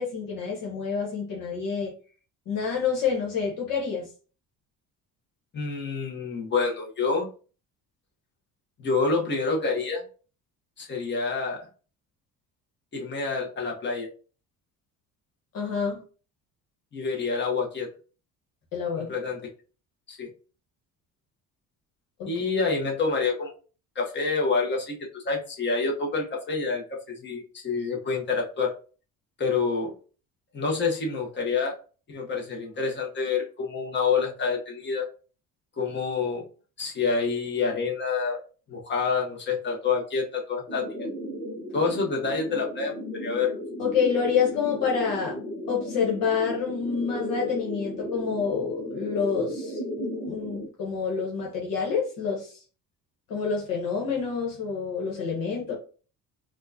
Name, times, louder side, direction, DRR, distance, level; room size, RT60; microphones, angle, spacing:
voice 1, 0.0-1.9 2.5-4.1 15.5-16.0 18.7-19.1 22.2-22.3 43.8-45.4 45.7-49.8 50.3-52.6 53.3-55.7, left 6 dB, 75° left, -2 dB, 1.3 m, -28 dB
voice 2, 5.5-7.3 8.8-10.0 10.8-11.7 12.9-14.1 16.9-17.9 19.0-19.4 20.1-20.3 22.2-23.5 23.9-28.7 29.4-29.9 30.5-31.7 32.1-35.1 35.8-36.4 36.8-38.4 38.7-40.8 41.7-43.5, left 4 dB, 30° left, 0 dB, 1.1 m, -27 dB
sound 1, 40.7-50.7, equal, 15° left, 1.3 m, -35 dB
4.5 x 2.4 x 2.8 m, 0.37 s
cardioid pair, 105°, 34 cm